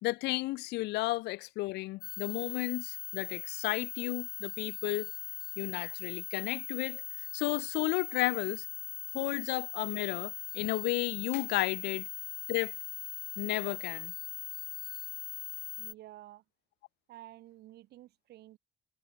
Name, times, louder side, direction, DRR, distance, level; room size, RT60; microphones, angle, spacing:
voice 1, 0.0-5.1 5.6-7.0 7.3-8.7 9.1-12.1 12.5-12.7 13.4-14.1, left 20 dB, 90° left, 2.9 m, -33 dB
sound 1, 2.0-15.9, left 13 dB, 65° left, 2.7 m, -40 dB
voice 2, 15.8-16.4 17.1-18.6, right 15 dB, 75° right, 7.3 m, -51 dB
cardioid pair, 110°, 17 cm